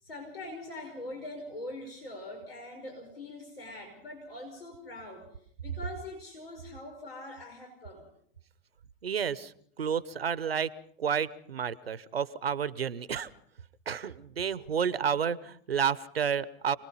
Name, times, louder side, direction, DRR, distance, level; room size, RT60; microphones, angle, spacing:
voice 1, 0.0-5.3 5.6-8.1, left 2 dB, 85° left, 3 dB, 5.3 m, -43 dB
voice 2, 9.0-10.7 11.0-13.3 13.9-16.8, right 7 dB, 90° right, 18 dB, 1.0 m, -31 dB
28.5 x 20.0 x 5.6 m, 0.65 s
hypercardioid pair, 90°, 29 cm